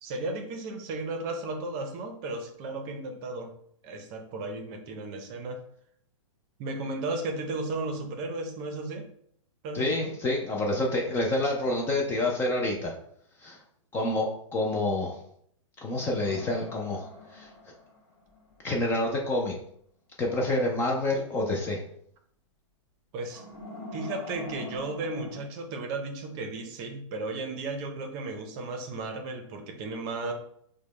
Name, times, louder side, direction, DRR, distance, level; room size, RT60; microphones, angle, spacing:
voice 1, 0.0-3.5 3.8-5.6 6.6-9.1 9.6-10.1 23.1-23.4 23.9-30.3, right 2 dB, 30° right, 5 dB, 0.6 m, -34 dB
voice 2, 9.7-12.9 13.4-13.6 13.9-15.2 15.8-17.1 17.3-17.5 18.6-19.6 20.2-21.8, left 2 dB, 15° left, -1 dB, 0.3 m, -28 dB
sound 1, 16.2-18.6 23.3-25.4, left 2 dB, 45° left, 1.5 m, -44 dB
4.9 x 2.1 x 3.1 m, 0.68 s
hypercardioid pair, 145°, 17 cm